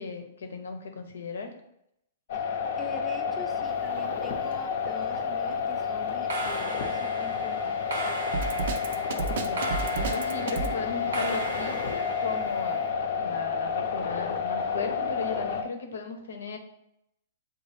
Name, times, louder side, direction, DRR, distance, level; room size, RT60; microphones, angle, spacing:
voice 1, 0.0-1.5 9.4-16.6, left 4 dB, 90° left, 5 dB, 0.8 m, -36 dB
sound 1, 2.3-15.6, left 6 dB, 60° left, 0.6 m, -30 dB
voice 2, 2.3-8.2, left 1 dB, ahead, 1 dB, 0.5 m, -44 dB
sound 2, 3.6-4.5 4.8-5.2 6.1-12.9, right 1 dB, 85° right, 0.8 m, -37 dB
Drum kit, 8.3-10.8, right 5 dB, 65° right, 0.5 m, -31 dB
6.9 x 2.4 x 3.2 m, 0.80 s
hypercardioid pair, 150°, 0 cm